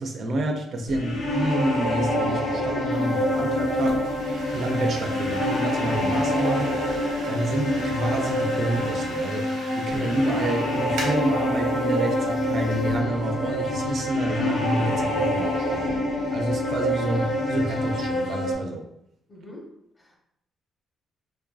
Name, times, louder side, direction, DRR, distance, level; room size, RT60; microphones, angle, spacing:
voice 1, 0.0-4.1 4.5-16.0 16.3-18.9, right 1 dB, 60° right, 3 dB, 0.4 m, -28 dB
sound 1, 0.9-18.5, left 1 dB, 75° left, 0.7 m, -26 dB
sound 2, 2.9-13.0, right 1 dB, 90° right, 0.7 m, -40 dB
voice 2, 19.3-19.7 20.0-20.2, left 1 dB, 20° left, 0 dB, 0.7 m, -44 dB
2.6 x 2.5 x 2.3 m, 0.77 s
cardioid pair, 90°, 0 cm